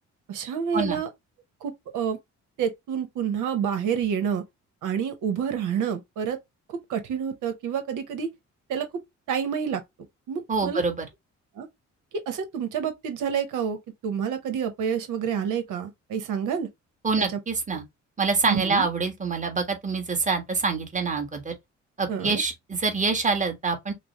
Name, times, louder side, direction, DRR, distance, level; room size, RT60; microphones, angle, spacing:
voice 1, 0.3-1.1 1.6-2.2 2.6-4.4 4.8-6.4 6.7-8.3 8.7-9.0 9.3-9.8 10.3-10.8 11.6-11.7 12.1-13.8 14.0-16.7 17.2-17.4 18.5-18.8 22.1-22.4, right 7 dB, 85° right, 0.9 m, -28 dB
voice 2, 10.5-11.1 17.0-17.8 18.2-21.5 22.0-23.9, right 4 dB, 25° right, 1.3 m, -26 dB
5.9 x 2.0 x 2.9 m
cardioid pair, 90°, 30 cm